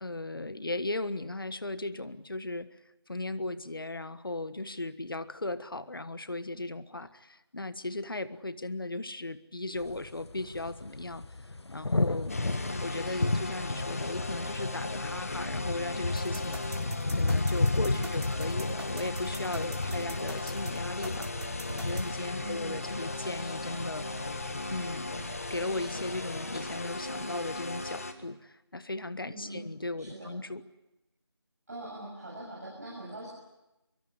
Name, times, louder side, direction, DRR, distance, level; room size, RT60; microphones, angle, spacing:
voice 1, 0.0-2.8 3.1-11.2 11.7-12.4 12.8-16.7 17.1-24.1 24.7-25.1 25.5-30.6, left 2 dB, 55° left, 14 dB, 1.4 m, -37 dB
sound 1, 9.8-28.0, left 2 dB, 75° left, 1.0 m, -34 dB
sound 2, 12.3-28.1, left 2 dB, 30° left, 1.7 m, -37 dB
sound 3, 16.2-22.1, right 1 dB, 75° right, 3.8 m, -42 dB
voice 2, 19.8-20.2 22.4-22.8 29.3-29.6 30.0-30.3 31.7-33.3, right 1 dB, 35° right, -4 dB, 7.2 m, -43 dB
23.5 x 23.5 x 9.6 m, 0.96 s
figure-of-eight pair, 175°, 14 cm